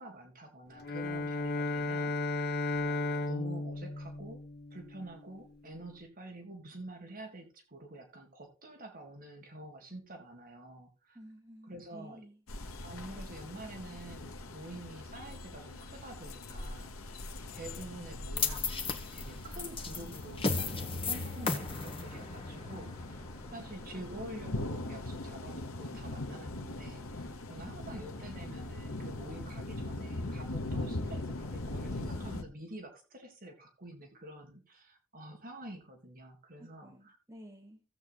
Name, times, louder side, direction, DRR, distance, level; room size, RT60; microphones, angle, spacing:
voice 1, 0.0-2.5 2.8-4.4 4.7-11.2 11.6-12.2 12.8-17.2 17.5-23.2 23.5-37.2, right 1 dB, 40° right, 3 dB, 2.0 m, -48 dB
Bowed string instrument, 0.8-5.2, left 2 dB, 50° left, 1.0 m, -34 dB
voice 2, 11.1-12.4 36.6-37.8, equal, 15° right, 1 dB, 2.4 m, -52 dB
sound 1, 12.5-32.4, left 2 dB, 75° left, 1.3 m, -41 dB
sound 2, 18.4-24.6, left 4 dB, 25° left, 1.4 m, -36 dB
16.0 x 8.0 x 2.4 m, 0.33 s
head